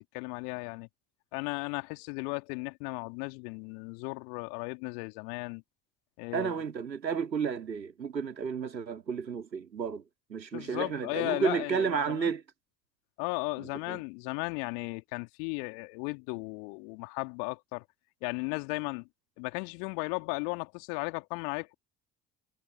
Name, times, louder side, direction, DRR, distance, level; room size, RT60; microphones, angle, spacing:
voice 1, 0.1-0.9 1.3-5.6 6.2-6.6 10.5-12.3 13.2-17.8 18.2-19.1 19.4-21.7, left 35 dB, 70° left, 2.8 m, -35 dB
voice 2, 6.3-10.0 10.3-12.4 13.6-14.0, right 6 dB, 90° right, 2.7 m, -32 dB
figure-of-eight pair, 50°, 50 cm